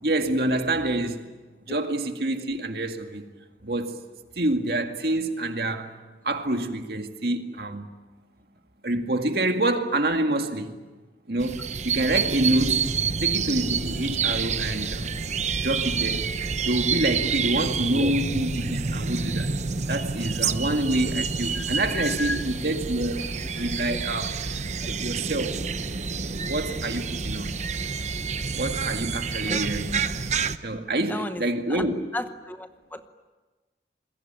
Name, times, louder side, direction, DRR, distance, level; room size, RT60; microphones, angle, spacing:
voice 1, 0.0-1.3 1.7-3.2 3.6-4.0 4.4-5.9 6.2-7.9 8.8-10.7 11.3-12.9 13.2-15.1 15.6-16.2 16.6-19.5 19.9-25.6 26.5-27.6 28.5-30.0 30.6-32.0, right 1 dB, 60° right, 2.1 m, -27 dB
sound 1, 11.4-30.6, right 5 dB, 40° right, 0.8 m, -28 dB
voice 2, 21.5-22.4 23.9-24.0 29.5-29.6 31.1-31.4 31.7-33.1, left 1 dB, 10° left, 0.9 m, -33 dB
27.5 x 22.0 x 9.0 m
head